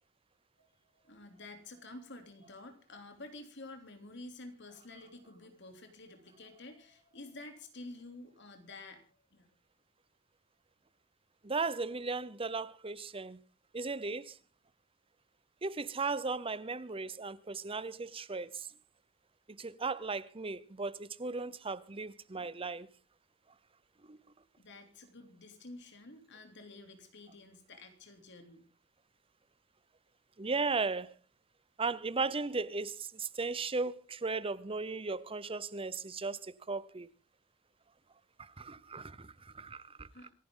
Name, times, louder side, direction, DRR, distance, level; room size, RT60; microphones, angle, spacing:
voice 1, 0.6-9.0 9.3-9.5 24.6-28.7 40.1-40.3, left 2 dB, 60° left, 3.3 m, -50 dB
voice 2, 11.4-13.4 13.7-14.4 15.6-18.7 19.5-22.9 24.1-24.2 30.4-31.2 31.8-37.1 38.4-40.3, right 4 dB, 30° right, 0.8 m, -36 dB
27.0 x 11.0 x 3.9 m
head